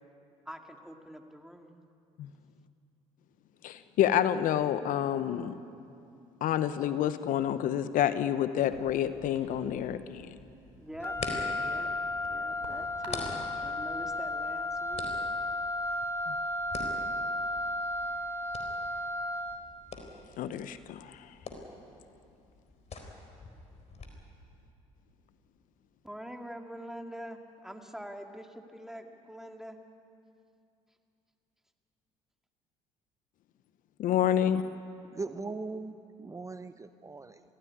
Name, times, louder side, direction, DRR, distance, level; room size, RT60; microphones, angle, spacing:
voice 1, 0.5-1.7 10.7-11.2 11.6-11.9 12.3-15.1 26.0-29.8, equal, 5° right, 4 dB, 2.2 m, -44 dB
voice 2, 3.6-5.5 6.4-10.4 16.3-16.4 20.4-21.3 34.0-34.6, left 10 dB, 65° left, 12 dB, 1.0 m, -28 dB
sound 1, 8.6-24.1, left 3 dB, 45° left, 4.2 m, -46 dB
sound 2, 9.2-15.8, right 3 dB, 85° right, 4.4 m, -53 dB
Wind instrument woodwind instrument, 11.0-19.7, left 1 dB, 15° left, 2.0 m, -33 dB
voice 3, 35.1-37.4, right 3 dB, 20° right, 11 dB, 0.8 m, -40 dB
22.5 x 16.0 x 9.8 m, 2.6 s
hypercardioid pair, 65°, 15 cm